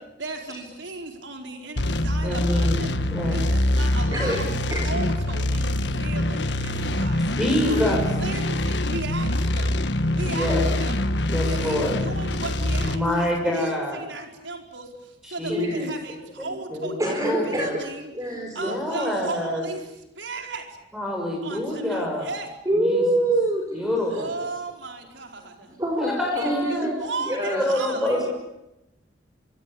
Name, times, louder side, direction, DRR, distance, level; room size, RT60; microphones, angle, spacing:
voice 1, 0.2-2.9 3.3-4.6 4.8-7.3 7.7-9.8 10.1-11.1 11.5-18.1 18.5-20.7 21.4-22.5 24.0-25.8 26.3-28.3, right 3 dB, 90° right, 3 dB, 4.6 m, -36 dB
sound 1, 1.8-13.0, left 1 dB, 65° left, 1.6 m, -24 dB
voice 2, 2.2-3.4 7.4-8.0 10.3-10.6 11.3-12.0 12.8-14.0 14.3-14.4 15.3-15.9 16.7-17.7 18.6-19.7 20.9-22.3 22.7-23.0 23.7-24.3 26.0-27.0 27.5-28.3, left 1 dB, ahead, 1 dB, 6.3 m, -26 dB
voice 3, 4.1-4.4 4.7-4.9 7.6-8.0 15.5-15.8 17.0-17.7 18.1-18.8 22.7-24.2 25.8-26.9 27.3-27.6, right 1 dB, 20° right, 2 dB, 4.4 m, -26 dB
25.5 x 25.5 x 8.6 m, 0.89 s
head